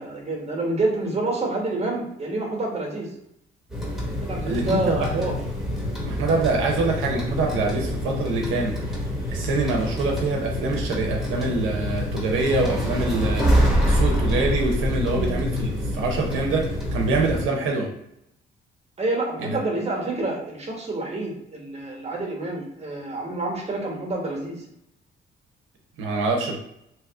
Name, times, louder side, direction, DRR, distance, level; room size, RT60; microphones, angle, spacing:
voice 1, 0.0-3.1 4.2-5.4 15.1-15.4 19.0-24.6, right 2 dB, 30° right, 0 dB, 1.1 m, -28 dB
sound 1, 3.7-17.4, equal, ahead, 1.2 m, -26 dB
voice 2, 4.5-5.2 6.0-8.8 9.3-17.9 26.0-26.6, right 3 dB, 85° right, 1 dB, 0.7 m, -25 dB
2.9 x 2.3 x 3.5 m, 0.77 s
cardioid pair, 90°, 20 cm